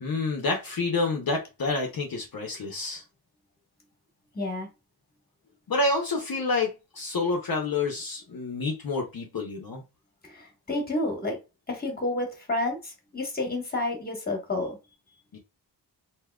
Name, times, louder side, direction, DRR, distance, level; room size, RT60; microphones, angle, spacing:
voice 1, 0.0-3.0 5.7-9.8 15.3-15.4, left 3 dB, 55° left, 1 dB, 0.7 m, -28 dB
voice 2, 4.3-4.7 10.2-11.4 11.7-14.8, left 2 dB, 20° left, 2 dB, 1.2 m, -30 dB
3.5 x 2.7 x 2.2 m, 0.27 s
wide cardioid pair, 140°, 43 cm